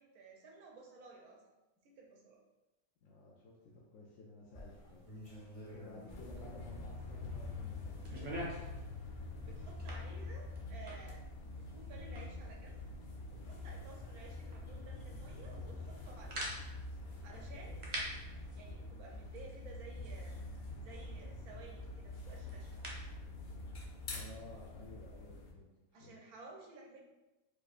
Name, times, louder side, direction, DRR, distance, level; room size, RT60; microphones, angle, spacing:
voice 1, 0.0-1.4 1.8-2.4 5.6-5.8 6.1-6.4 9.4-11.3 11.5-12.8 13.3-16.4 17.0-18.1 18.6-20.4 20.8-22.7 25.9-27.0, right 3 dB, 85° right, 0 dB, 1.2 m, -55 dB
voice 2, 3.0-5.1 5.7-8.5 24.1-25.7 26.0-26.2, left 2 dB, 65° left, -3 dB, 0.8 m, -54 dB
sound 1, 4.5-16.8, equal, 30° left, 0.7 m, -59 dB
sound 2, 6.1-25.5, left 2 dB, 85° left, 0.4 m, -46 dB
sound 3, 7.9-23.1, right 1 dB, 35° right, 0.7 m, -49 dB
4.7 x 2.6 x 2.4 m, 1.0 s
omnidirectional pair, 1.6 m